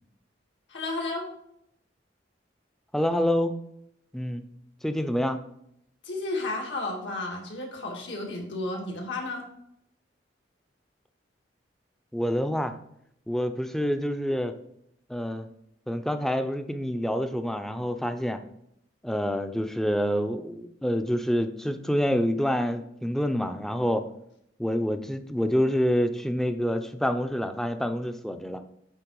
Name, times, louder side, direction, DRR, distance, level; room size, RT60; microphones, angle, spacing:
voice 1, 0.7-1.2 6.0-9.4, left 2 dB, 80° left, 0 dB, 1.9 m, -32 dB
voice 2, 2.9-3.5 4.1-4.4 4.8-5.4 12.1-12.7 13.3-14.6 15.1-15.5 15.9-18.4 19.0-24.1 24.6-28.6, equal, ahead, 8 dB, 0.5 m, -27 dB
8.9 x 3.7 x 4.7 m, 0.74 s
head